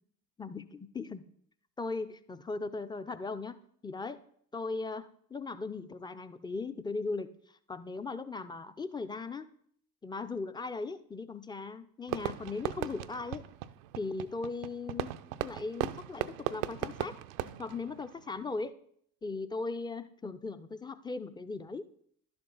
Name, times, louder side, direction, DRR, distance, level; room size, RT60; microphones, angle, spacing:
voice 1, 0.4-1.2 1.8-3.6 3.8-4.2 4.5-7.3 7.7-9.5 10.0-13.5 14.0-15.2 15.4-17.1 17.6-18.7 19.2-21.9, left 3 dB, 10° left, 12 dB, 0.5 m, -38 dB
Fireworks, 12.1-18.6, right 14 dB, 70° right, 0.6 m, -38 dB
11.5 x 6.9 x 3.9 m, 0.64 s
figure-of-eight pair, 60°, 48 cm